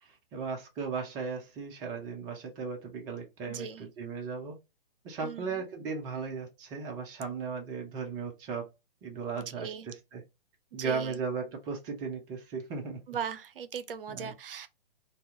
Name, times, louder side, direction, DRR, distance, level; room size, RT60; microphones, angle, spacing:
voice 1, 0.0-4.6 5.0-8.7 9.0-10.2 10.7-13.0 14.1-14.3, right 5 dB, 15° right, 0.4 m, -36 dB
voice 2, 3.5-3.8 5.2-5.6 9.6-9.9 10.7-11.2 13.1-14.7, right 7 dB, 70° right, 0.5 m, -39 dB
2.7 x 2.3 x 3.5 m
figure-of-eight pair, 120°, 29 cm